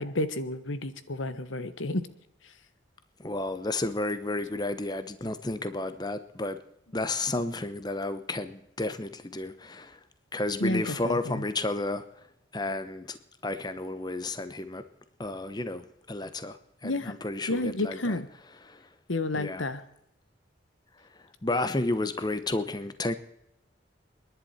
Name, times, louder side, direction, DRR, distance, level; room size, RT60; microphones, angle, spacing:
voice 1, 0.0-2.0 2.4-2.5 10.6-11.4 16.8-17.1 17.5-18.3 19.1-19.8, left 2 dB, 85° left, 12 dB, 1.3 m, -31 dB
voice 2, 3.2-6.6 6.9-10.0 10.3-12.0 12.5-14.8 15.2-16.6 16.8-18.7 19.3-19.7 21.4-23.1, left 2 dB, 20° left, 11 dB, 0.9 m, -32 dB
29.0 x 11.0 x 4.3 m, 0.80 s
head